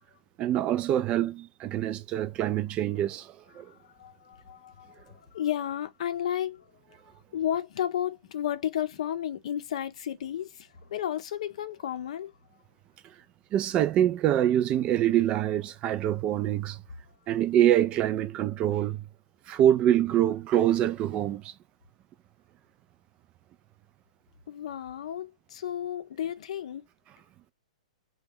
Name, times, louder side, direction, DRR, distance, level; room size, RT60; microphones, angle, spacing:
voice 1, 0.4-3.7 13.5-16.8 17.3-19.0 19.5-21.5, right 11 dB, 30° right, 0.3 m, -25 dB
voice 2, 3.7-6.7 7.3-12.3 24.5-26.8, left 10 dB, 65° left, 0.6 m, -33 dB
2.9 x 2.3 x 3.6 m
hypercardioid pair, 125°, 4 cm